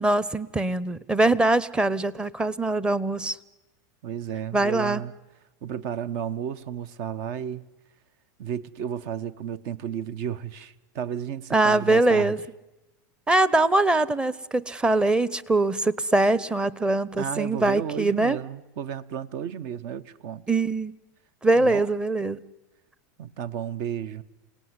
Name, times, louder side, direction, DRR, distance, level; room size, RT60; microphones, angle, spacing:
voice 1, 0.0-3.4 4.5-5.0 11.5-12.4 13.3-18.4 20.5-20.9 21.4-22.4, right 2 dB, 10° right, 0.9 m, -22 dB
voice 2, 4.0-5.1 5.6-7.6 8.4-12.3 17.2-20.5 21.5-21.9 23.2-24.2, right 9 dB, 55° right, 1.1 m, -33 dB
28.5 x 18.5 x 9.7 m
supercardioid pair, 125°, 11 cm